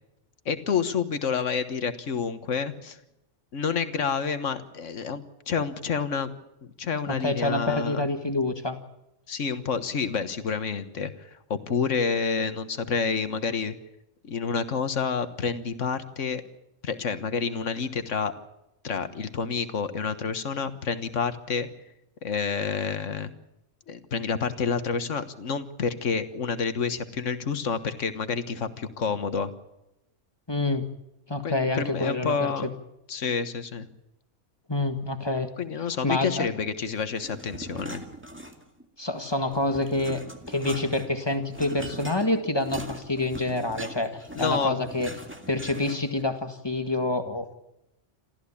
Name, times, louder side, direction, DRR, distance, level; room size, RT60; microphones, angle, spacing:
voice 1, 0.4-3.0 3.5-6.3 6.8-8.1 9.3-13.7 14.2-16.4 16.8-18.3 18.8-21.7 22.2-23.3 23.9-29.5 31.4-32.7 33.1-33.9 35.6-38.0 44.3-44.7, left 5 dB, 85° left, 10 dB, 1.7 m, -29 dB
voice 2, 7.1-8.8 30.5-30.8 31.3-32.7 34.7-35.5 36.0-36.5 39.0-45.1 45.5-47.5, left 2 dB, 20° left, 7 dB, 1.7 m, -27 dB
sound 1, 37.1-38.8 39.2-46.2, right 1 dB, 10° right, 2.0 m, -41 dB
27.5 x 14.0 x 8.5 m, 0.88 s
omnidirectional pair, 1.3 m